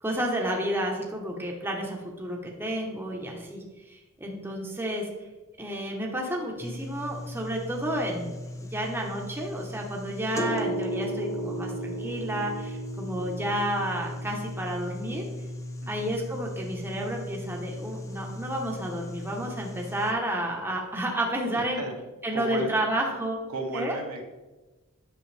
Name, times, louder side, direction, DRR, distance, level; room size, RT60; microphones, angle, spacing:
voice 1, 0.0-5.1 5.6-15.2 15.9-21.8 22.2-23.4 23.7-24.0, right 1 dB, 10° right, -1 dB, 1.0 m, -31 dB
sound 1, 6.6-20.1, equal, 15° left, 0.6 m, -36 dB
voice 2, 15.8-16.1 21.5-22.0 22.3-22.8 23.5-24.2, right 2 dB, 75° right, 1 dB, 1.2 m, -34 dB
8.8 x 6.1 x 3.3 m, 1.2 s
head